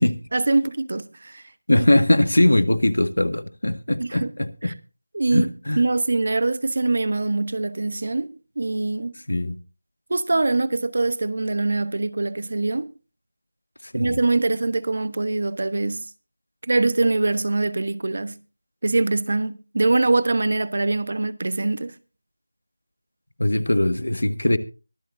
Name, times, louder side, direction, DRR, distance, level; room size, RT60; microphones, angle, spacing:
voice 1, 0.3-1.4 1.8-1.9 4.0-4.3 4.6-4.7 5.1-5.5 5.8-9.2 10.1-12.9 13.9-16.1 16.6-18.4 18.8-21.9, right 2 dB, 50° right, 1.0 m, -23 dB
voice 2, 1.7-4.7 5.3-5.8 9.3-9.6 13.9-14.2 23.4-24.6, left 1 dB, 85° left, 1.7 m, -21 dB
24.0 x 8.6 x 2.6 m
figure-of-eight pair, 170°, 0 cm